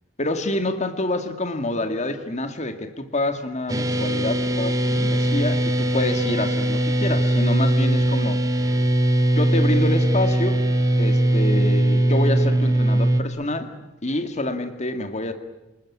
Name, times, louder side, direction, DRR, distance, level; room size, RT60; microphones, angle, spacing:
voice 1, 0.2-8.4 9.3-10.6 11.0-13.7 14.0-15.3, left 2 dB, 35° left, 7 dB, 2.1 m, -27 dB
sound 1, 3.7-13.2, right 1 dB, 20° right, 1.9 m, -20 dB
28.5 x 20.5 x 9.9 m, 0.99 s
head